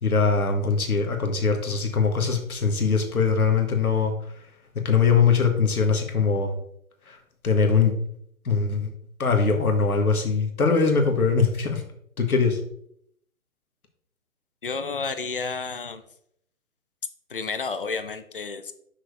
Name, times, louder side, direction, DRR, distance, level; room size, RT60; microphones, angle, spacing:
voice 1, 0.0-4.1 4.8-6.5 7.1-7.2 7.4-8.0 8.4-8.9 9.2-11.8 12.2-12.6, left 5 dB, 75° left, 4 dB, 1.6 m, -22 dB
voice 2, 14.6-16.0 17.3-18.7, left 4 dB, 40° left, 9 dB, 0.4 m, -31 dB
6.6 x 6.0 x 2.7 m, 0.70 s
figure-of-eight pair, 145°, 44 cm